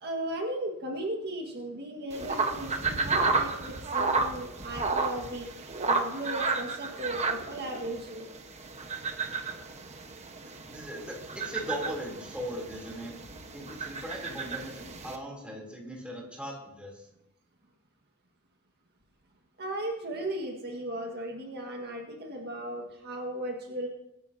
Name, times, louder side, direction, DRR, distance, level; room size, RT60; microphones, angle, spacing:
voice 1, 0.0-5.5 5.8-8.3 19.6-23.9, right 1 dB, 45° right, 1 dB, 1.8 m, -36 dB
sound 1, 2.1-15.2, right 4 dB, 30° right, 1.2 m, -32 dB
voice 2, 10.7-13.1 13.5-17.1, equal, 5° right, -2 dB, 3.3 m, -39 dB
24.5 x 10.5 x 2.8 m, 0.86 s
head